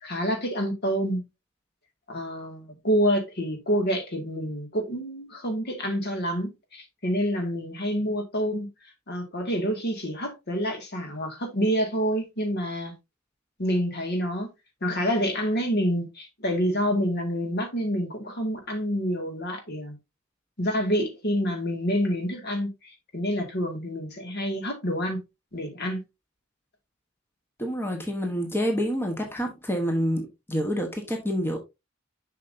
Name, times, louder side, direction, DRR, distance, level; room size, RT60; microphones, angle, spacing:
voice 1, 0.0-1.2 2.1-8.7 9.1-13.0 13.6-14.5 14.8-20.0 20.6-25.2 25.5-26.0, equal, 55° left, 2.0 m, -27 dB
voice 2, 27.6-30.2 30.5-31.6, equal, 10° left, 1.1 m, -27 dB
7.1 x 5.7 x 2.6 m
head